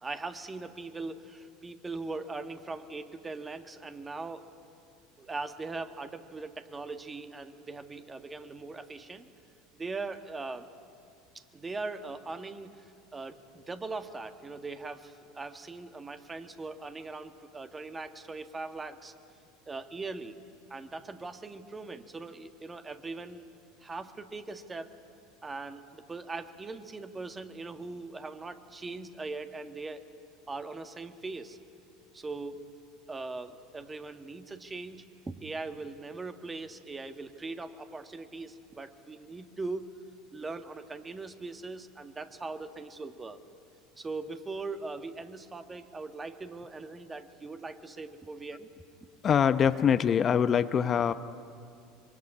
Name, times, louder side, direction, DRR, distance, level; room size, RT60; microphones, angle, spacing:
voice 1, 0.0-4.5 5.2-9.3 9.8-10.7 11.3-19.1 19.7-20.4 20.7-23.5 23.8-25.0 25.4-30.1 30.5-31.6 32.1-32.6 33.1-39.9 40.3-43.4 44.0-48.7, right 3 dB, 20° right, 8 dB, 1.7 m, -40 dB
voice 2, 49.2-51.1, left 8 dB, 35° left, 11 dB, 0.8 m, -24 dB
25.0 x 23.5 x 9.8 m, 2.5 s
hypercardioid pair, 75°, 0 cm